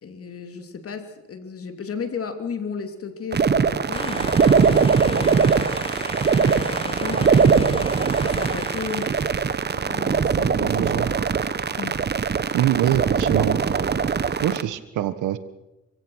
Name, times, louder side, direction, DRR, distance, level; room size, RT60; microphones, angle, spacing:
voice 1, 0.0-5.9 6.3-9.2 9.7-11.5 11.8-12.0, left 5 dB, 50° left, 7 dB, 3.1 m, -35 dB
sound 1, 3.3-14.6, right 6 dB, 35° right, 1.2 m, -21 dB
sound 2, 3.9-9.6, left 3 dB, 20° left, 0.8 m, -36 dB
voice 2, 10.6-11.1 12.5-13.6 14.4-15.4, right 12 dB, 80° right, 13 dB, 1.5 m, -23 dB
27.5 x 16.0 x 6.5 m, 0.96 s
cardioid pair, 90°, 30 cm